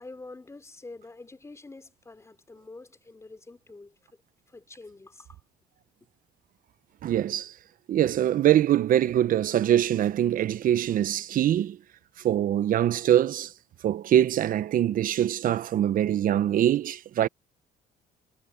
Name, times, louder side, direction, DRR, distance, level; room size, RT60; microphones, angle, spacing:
voice 1, 0.0-4.2 4.5-5.4 6.0-6.1, left 3 dB, 15° left, 4.0 m, -46 dB
voice 2, 7.0-7.5 7.9-11.8 12.2-13.5 13.8-17.3, right 11 dB, 55° right, 0.8 m, -23 dB
cardioid pair, 110°, 17 cm